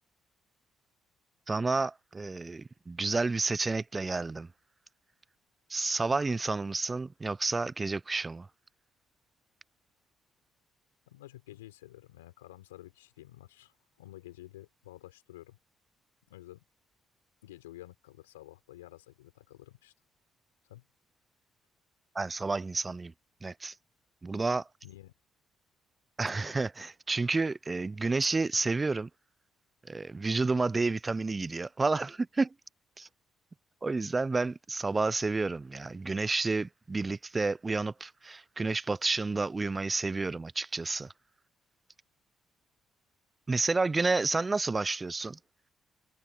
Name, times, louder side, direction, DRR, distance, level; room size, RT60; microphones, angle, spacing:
voice 1, 1.5-4.5 5.7-8.5 22.1-23.1 23.4-23.7 24.2-24.7 26.2-29.1 29.8-32.5 33.0-33.1 33.8-41.1 43.5-45.4, right 3 dB, 30° right, 0.6 m, -30 dB
voice 2, 11.1-15.6 16.3-16.6 17.4-19.9 20.6-20.9 24.8-25.1, left 16 dB, 90° left, 6.2 m, -51 dB
hypercardioid pair, 50°, 0 cm